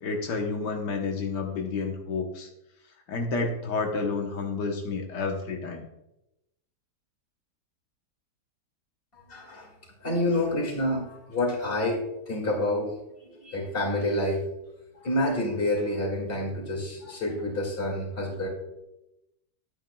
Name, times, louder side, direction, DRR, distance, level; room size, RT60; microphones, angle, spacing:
voice 1, 0.0-2.5 3.1-5.9, left 4 dB, 90° left, 2 dB, 1.7 m, -30 dB
voice 2, 9.1-9.7 10.0-12.9 13.3-14.4 14.9-18.5, left 1 dB, 35° left, -1 dB, 2.4 m, -28 dB
11.5 x 9.0 x 2.3 m, 0.89 s
omnidirectional pair, 1.8 m